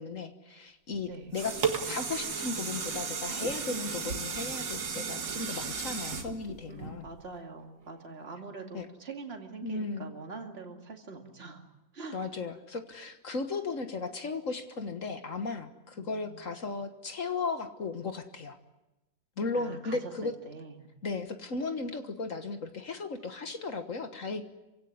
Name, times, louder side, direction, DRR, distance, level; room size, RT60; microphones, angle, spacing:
voice 1, 0.0-1.6 1.8-7.1 8.7-8.9 9.6-10.1 12.1-18.6 19.4-20.4 21.0-24.4, left 4 dB, 45° left, 8 dB, 1.7 m, -36 dB
sound 1, 1.0-7.4 7.9-8.0, right 6 dB, 80° right, 2.5 m, -34 dB
voice 2, 6.7-11.6 11.9-12.2 16.0-16.5 19.6-20.1 20.4-20.9, right 4 dB, 35° right, 3 dB, 2.6 m, -44 dB
27.0 x 16.5 x 9.7 m, 1.0 s
omnidirectional pair, 2.0 m